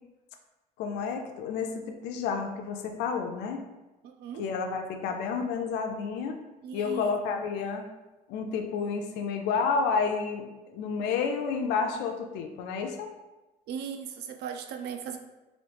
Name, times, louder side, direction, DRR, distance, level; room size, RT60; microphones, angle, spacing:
voice 1, 0.8-3.7 4.4-6.4 6.7-7.8 8.3-13.1, left 5 dB, 90° left, 4 dB, 0.4 m, -30 dB
voice 2, 4.0-4.4 6.6-7.1 13.7-15.2, right 7 dB, 75° right, 6 dB, 0.4 m, -37 dB
3.1 x 2.6 x 3.3 m, 1.1 s
cardioid pair, 110°, 17 cm